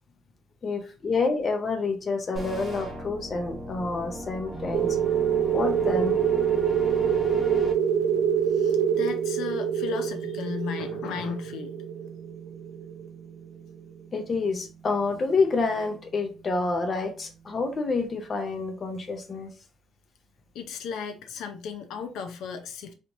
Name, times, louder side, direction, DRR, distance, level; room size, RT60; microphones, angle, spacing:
voice 1, 0.6-5.0 5.5-6.1 14.1-19.5, left 3 dB, 30° left, 0.6 m, -28 dB
sound 1, 2.3-7.7, equal, 5° right, 0.8 m, -38 dB
sound 2, 4.5-18.9, right 8 dB, 50° left, 1.1 m, -43 dB
sound 3, 4.7-13.1, right 8 dB, 80° right, 0.5 m, -25 dB
voice 2, 8.5-11.7 20.5-22.9, left 6 dB, 75° left, 0.5 m, -35 dB
3.3 x 2.9 x 2.6 m
cardioid pair, 170°, 0 cm